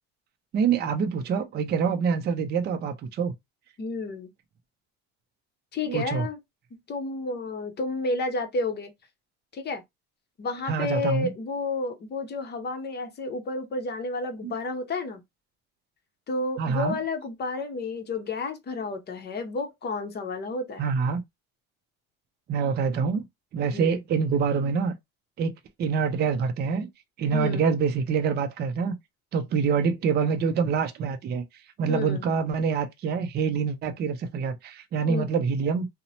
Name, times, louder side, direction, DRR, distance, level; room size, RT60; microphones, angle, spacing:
voice 1, 0.5-3.3 5.9-6.3 10.7-11.3 14.4-14.5 16.6-17.0 20.8-21.2 22.5-23.3 23.5-24.9 25.4-25.5 25.8-26.9 27.2-28.9 29.3-31.4 31.8-35.9, right 6 dB, 35° right, 0.4 m, -26 dB
voice 2, 3.8-4.3 5.7-6.4 6.9-8.9 9.5-9.8 10.4-15.2 16.3-20.8 23.7-24.0 27.3-27.7 31.9-32.3 35.1-35.3, left 3 dB, 35° left, 0.7 m, -31 dB
2.8 x 2.0 x 2.7 m
cardioid pair, 115°, 30 cm